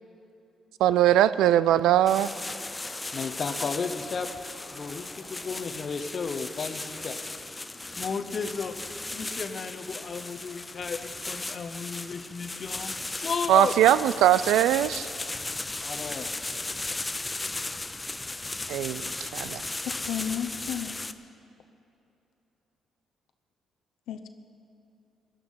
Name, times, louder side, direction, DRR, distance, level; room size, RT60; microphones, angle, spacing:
voice 1, 0.8-2.3 13.5-15.1 18.7-19.6, right 12 dB, 90° right, 17 dB, 0.3 m, -21 dB
sound 1, 2.1-21.1, left 2 dB, 20° left, 0.6 m, -36 dB
voice 2, 2.8-4.3 4.7-7.2 8.0-8.8 9.1-13.7 15.8-16.3, left 5 dB, 45° left, 6 dB, 0.8 m, -34 dB
voice 3, 19.8-20.9 24.1-24.3, left 9 dB, 85° left, 6 dB, 0.8 m, -33 dB
17.5 x 11.5 x 5.6 m, 2.8 s
cardioid pair, 90°, 0 cm